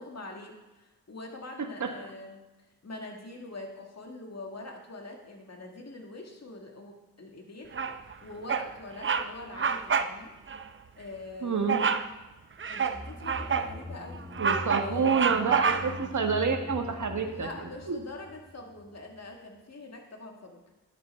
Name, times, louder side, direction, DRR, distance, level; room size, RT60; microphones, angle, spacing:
voice 1, 0.0-2.4 2.8-7.8 8.2-10.3 10.9-11.9 12.7-14.3 14.8-15.3 17.2-20.6, left 2 dB, 45° left, 2 dB, 2.1 m, -44 dB
Bird vocalization bird call bird song, 7.7-8.1 8.5-8.7 9.0-9.3 9.6-10.1 10.5-10.6 11.7-12.1 12.6-13.7 14.1-16.1, right 6 dB, 35° right, 0.6 m, -28 dB
voice 2, 11.4-11.8 14.4-18.0, right 5 dB, 55° right, 5 dB, 1.4 m, -28 dB
sound 1, 12.6-19.0 19.3-19.4, left 2 dB, 5° left, 2.8 m, -42 dB
10.5 x 8.1 x 4.5 m, 1.1 s
supercardioid pair, 45°, 36 cm